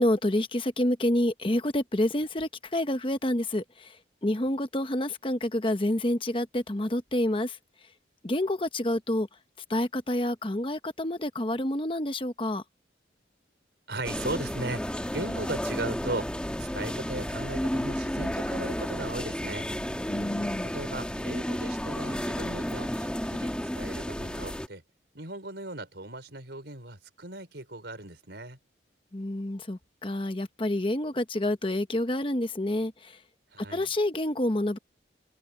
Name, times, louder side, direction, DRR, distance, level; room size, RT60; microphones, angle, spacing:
voice 1, 0.0-3.9 4.2-7.6 8.2-9.3 9.7-12.6 20.1-20.7 29.1-33.2 33.7-34.8, left 1 dB, 30° left, 1.1 m, -28 dB
voice 2, 13.9-19.7 20.6-24.8 25.1-28.6 33.5-33.9, right 2 dB, 70° right, 4.8 m, -37 dB
sound 1, 14.0-24.7, equal, 5° left, 1.6 m, -32 dB
head